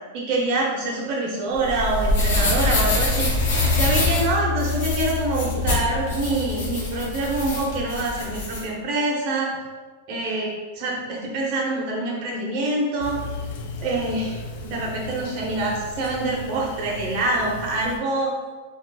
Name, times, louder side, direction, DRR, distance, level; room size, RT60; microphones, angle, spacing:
voice 1, 0.1-3.3 3.7-9.5 10.1-13.2 13.8-18.3, right 2 dB, 35° right, -3 dB, 0.7 m, -25 dB
sound 1, 1.5-8.6, left 2 dB, 75° left, 1.0 m, -24 dB
sound 2, 3.5-7.8, left 5 dB, 15° left, 1.3 m, -29 dB
sound 3, 13.0-18.0, left 3 dB, 55° left, 0.4 m, -36 dB
4.0 x 2.3 x 2.2 m, 1.3 s
supercardioid pair, 165°, 0 cm